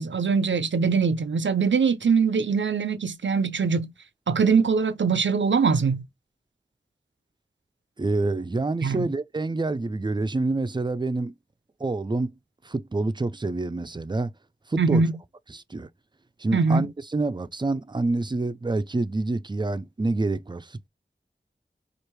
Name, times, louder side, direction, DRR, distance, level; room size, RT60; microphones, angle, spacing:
voice 1, 0.0-3.9 4.3-6.0 8.8-9.1 14.8-15.1 16.5-16.9, right 5 dB, 80° right, 0.5 m, -22 dB
voice 2, 8.0-11.3 11.8-12.4 12.6-14.3 14.7-15.1 15.5-15.9 16.4-20.9, right 2 dB, 25° right, 0.4 m, -27 dB
4.6 x 2.5 x 3.1 m
wide cardioid pair, 55°, 19 cm